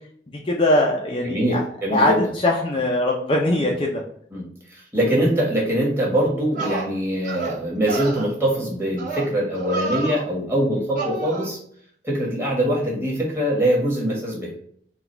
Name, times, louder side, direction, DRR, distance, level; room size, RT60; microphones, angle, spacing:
voice 1, 0.4-1.6 1.9-2.1 2.4-4.0, left 1 dB, 30° left, -1 dB, 0.5 m, -21 dB
voice 2, 1.1-2.3 3.6-3.7 4.3-11.6 12.0-14.5, right 1 dB, 15° right, -4 dB, 1.3 m, -23 dB
sound 1, 6.0-6.1 6.5-6.9 7.2-7.6 7.9-8.2 9.0-9.3 9.5-10.2 10.9-11.5, right 3 dB, 45° right, 1.4 m, -29 dB
3.9 x 2.3 x 4.3 m, 0.63 s
head